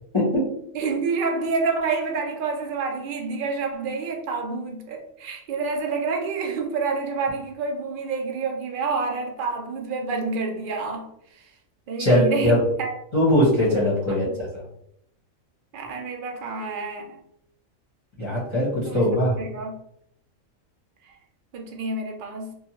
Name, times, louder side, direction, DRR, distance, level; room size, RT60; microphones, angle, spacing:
voice 1, 0.1-0.4 12.0-12.6 13.1-14.6 18.2-19.4, left 1 dB, 25° left, -7 dB, 0.8 m, -21 dB
voice 2, 0.7-11.1 11.3-11.4 11.9-12.9 14.2-14.3 15.7-17.2 18.9-19.0 19.4-19.7 21.5-22.5, right 4 dB, 60° right, 2 dB, 0.5 m, -28 dB
2.7 x 2.2 x 2.9 m, 0.74 s
omnidirectional pair, 1.4 m